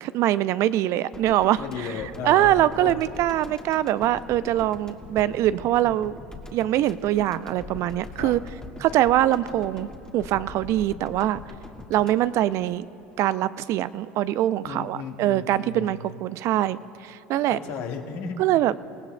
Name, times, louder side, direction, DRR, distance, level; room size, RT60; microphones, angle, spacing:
voice 1, 0.0-1.9 2.2-6.2 6.5-8.4 8.8-9.9 10.1-11.4 11.9-12.9 13.2-17.6 18.4-18.8, right 13 dB, 55° right, 16 dB, 0.4 m, -23 dB
sound 1, 1.1-13.3 13.6-13.8, left 2 dB, 15° left, 1.5 m, -42 dB
voice 2, 1.6-3.1 8.1-8.3 14.6-16.1 17.5-18.4, left 6 dB, 65° left, 2 dB, 1.6 m, -35 dB
28.0 x 17.5 x 2.2 m, 2.8 s
hypercardioid pair, 80°, 6 cm